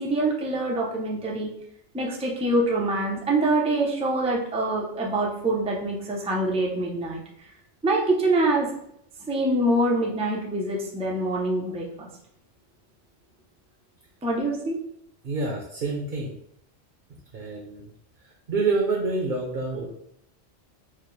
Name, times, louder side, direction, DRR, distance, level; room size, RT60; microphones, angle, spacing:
voice 1, 0.0-1.5 1.9-7.2 7.8-8.7 9.2-12.1 14.2-14.8, right 2 dB, 10° right, -2 dB, 0.4 m, -25 dB
voice 2, 15.2-16.4 17.3-17.9 18.2-19.9, right 3 dB, 55° right, -1 dB, 0.8 m, -27 dB
4.9 x 2.0 x 3.1 m, 0.74 s
omnidirectional pair, 1.1 m